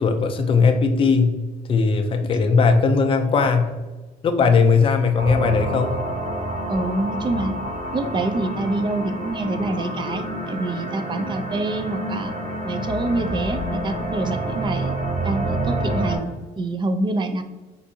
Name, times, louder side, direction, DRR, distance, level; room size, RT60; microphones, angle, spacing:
voice 1, 0.0-1.4 1.7-3.7 4.2-6.0, left 4 dB, 30° left, 5 dB, 0.4 m, -18 dB
sound 1, 5.2-16.2, right 1 dB, 45° right, 1.2 m, -28 dB
voice 2, 6.7-7.5 7.9-12.3 12.6-14.9 15.2-17.4, right 2 dB, 30° right, 8 dB, 0.4 m, -26 dB
4.5 x 2.6 x 2.7 m, 1.2 s
cardioid pair, 110°, 17 cm